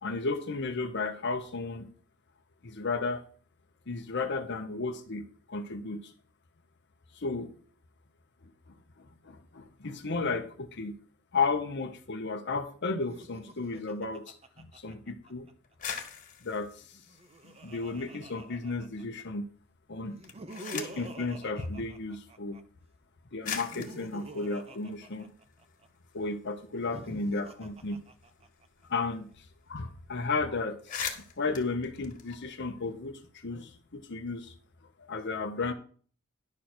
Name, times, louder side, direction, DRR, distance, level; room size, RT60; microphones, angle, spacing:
voice 1, 0.0-1.9 2.6-3.2 3.9-6.1 7.1-7.5 8.7-11.0 11.3-15.5 16.4-17.0 17.6-19.5 19.9-20.1 20.7-22.6 23.3-25.3 26.1-28.0 28.8-34.5 35.0-35.7, left 3 dB, 55° left, 6 dB, 0.9 m, -34 dB
Laughter, 13.0-15.5 16.8-19.2 20.1-22.6 23.4-25.9 26.7-28.7, right 2 dB, 30° right, 0.8 m, -47 dB
sound 1, 15.6-18.2 18.6-19.3 20.1-21.1 22.2-22.3 23.0-23.1 23.4-25.7 26.1-26.2 26.5-29.1 29.3-29.5 29.8-30.0 30.4-30.5 30.7-32.9, left 7 dB, 40° left, 1.7 m, -42 dB
11.0 x 6.4 x 4.4 m, 0.43 s
head